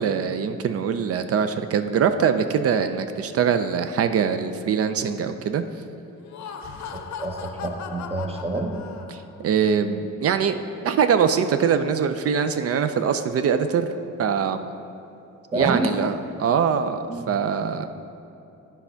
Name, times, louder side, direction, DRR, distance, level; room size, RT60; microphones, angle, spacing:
voice 1, 0.0-5.6 9.1-10.6 10.8-13.9 14.2-14.7 15.5-17.9, right 7 dB, 50° right, 9 dB, 0.4 m, -23 dB
Laughter, 6.1-9.4, left 6 dB, 65° left, 0.6 m, -38 dB
voice 2, 6.9-8.7 15.5-15.9 17.1-17.3, right 2 dB, 20° right, 3 dB, 0.9 m, -28 dB
9.6 x 3.5 x 5.6 m, 2.9 s
cardioid pair, 90°, 30 cm